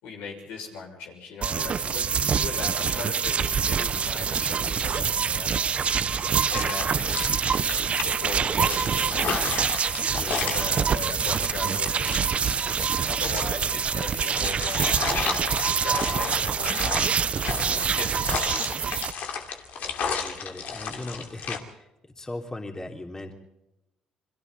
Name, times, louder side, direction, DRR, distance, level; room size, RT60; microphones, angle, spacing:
voice 1, 0.0-5.6 6.5-7.3 8.0-9.4 10.4-17.1 17.9-18.6, left 4 dB, 85° left, 1 dB, 6.4 m, -39 dB
sound 1, 1.4-19.1, right 6 dB, 45° right, 0.7 m, -26 dB
sound 2, 6.1-21.6, left 6 dB, 65° left, 2.7 m, -34 dB
voice 2, 10.1-10.5 20.1-21.6 22.2-23.3, left 2 dB, 20° left, 2 dB, 3.3 m, -37 dB
29.5 x 22.5 x 4.1 m, 0.91 s
supercardioid pair, 75°, 3 cm